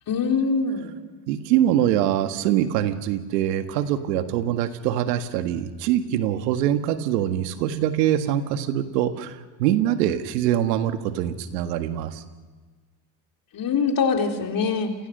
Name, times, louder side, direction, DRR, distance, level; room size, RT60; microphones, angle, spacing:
voice 1, 0.1-0.9 13.5-14.9, left 5 dB, 45° left, 3 dB, 3.9 m, -23 dB
voice 2, 1.3-12.2, right 11 dB, 85° right, 8 dB, 1.8 m, -24 dB
29.0 x 22.5 x 6.7 m, 1.4 s
supercardioid pair, 90°, 47 cm